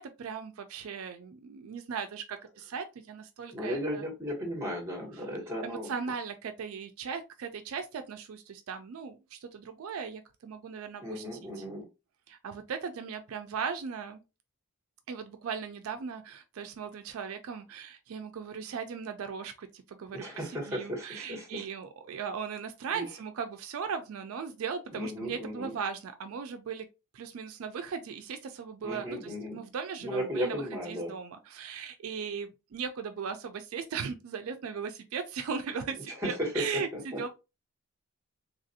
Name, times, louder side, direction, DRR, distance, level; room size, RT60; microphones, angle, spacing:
voice 1, 0.0-4.0 5.6-11.2 11.6-11.7 12.3-14.2 15.1-20.2 20.5-26.9 27.1-30.6 30.9-37.3, right 6 dB, 70° right, 0.4 m, -38 dB
voice 2, 3.5-5.9 11.0-11.8 20.1-21.6 22.9-23.1 24.9-25.7 28.8-29.6 30.0-31.1 36.1-37.2, equal, 15° right, 1.2 m, -35 dB
3.3 x 2.5 x 2.6 m
head